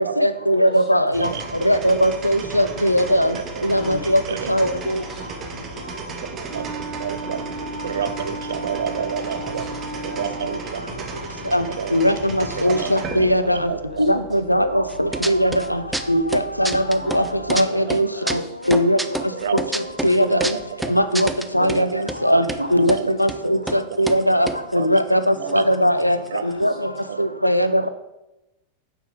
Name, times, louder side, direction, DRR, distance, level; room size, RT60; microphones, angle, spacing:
voice 1, 0.0-1.3 1.6-3.3 3.6-4.2 4.5-5.0 11.5-11.6 11.9-13.6 14.0-14.2 14.5-15.8 16.1-16.2 16.6-17.2 17.5-18.4 18.7-19.0 20.0-20.5 20.9-21.3 21.5-21.9 22.2-22.4 22.7-24.5 24.7-26.2 26.4-26.7 27.2-27.9, equal, 90° left, 12 dB, 0.5 m, -19 dB
voice 2, 0.9-1.4 3.3-3.8 4.3-4.5 5.9-6.7 7.0-7.5 7.8-9.7 10.0-11.2 11.5-12.0 12.6-12.9 13.4-14.2 15.1-15.3 17.2-17.3 17.9-18.0 18.8-18.9 19.3-19.7 20.3-21.0 21.6-22.4 22.8-23.0 23.9-24.0 24.3-25.0 25.4-25.6 26.3-26.4 27.1-27.4, right 8 dB, 65° right, 12 dB, 0.5 m, -31 dB
sound 1, 1.1-17.6, right 3 dB, 30° right, 1.4 m, -36 dB
voice 3, 3.7-4.1 4.4-5.7 6.2-6.3 7.5-7.7 9.3-9.8 10.1-10.2 11.3-11.5 12.5-14.1 15.4-15.8 16.9-17.4 17.6-18.5 20.3-20.4 21.5-21.8 22.1-23.3 24.0-24.2 25.3-25.6 26.1-27.0, left 5 dB, 20° left, -3 dB, 2.5 m, -44 dB
Wind instrument woodwind instrument, 6.5-10.7, right 2 dB, 85° right, 1.6 m, -34 dB
sound 2, 14.9-15.7 15.9-17.6 17.9-21.8 22.1-22.2 22.4-23.0 23.3-23.4 23.7-23.8 24.1-25.7 26.0-26.1 26.3-26.6, right 2 dB, 5° right, 0.5 m, -28 dB
9.0 x 4.6 x 5.0 m, 0.95 s
figure-of-eight pair, 90°, 0 cm